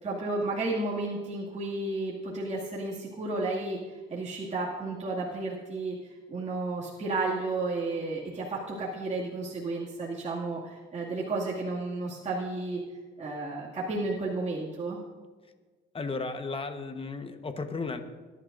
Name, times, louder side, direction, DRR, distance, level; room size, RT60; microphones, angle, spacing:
voice 1, 0.0-3.8 4.1-6.0 6.3-12.8 13.2-15.0, right 2 dB, 35° right, -6 dB, 2.3 m, -32 dB
voice 2, 15.9-18.0, left 3 dB, 25° left, 7 dB, 1.2 m, -34 dB
21.0 x 11.0 x 2.6 m, 1.4 s
cardioid pair, 90°, 20 cm